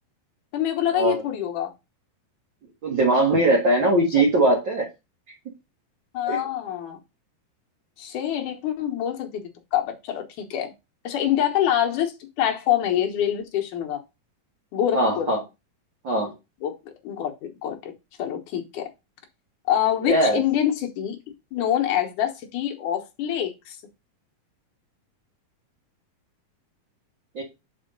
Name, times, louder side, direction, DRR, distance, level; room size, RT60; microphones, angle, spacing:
voice 1, 0.5-1.7 4.1-4.2 6.1-7.0 8.0-10.7 11.0-14.0 14.7-15.3 16.6-16.7 17.0-17.9 18.2-18.9 19.7-21.2 21.5-23.8, left 10 dB, 65° left, 4 dB, 2.3 m, -25 dB
voice 2, 2.8-4.8 6.3-6.4 14.9-15.4 16.0-16.3 20.1-20.4 27.3-27.4, right 2 dB, 45° right, -2 dB, 1.6 m, -20 dB
5.6 x 5.0 x 5.2 m, 0.25 s
omnidirectional pair, 4.3 m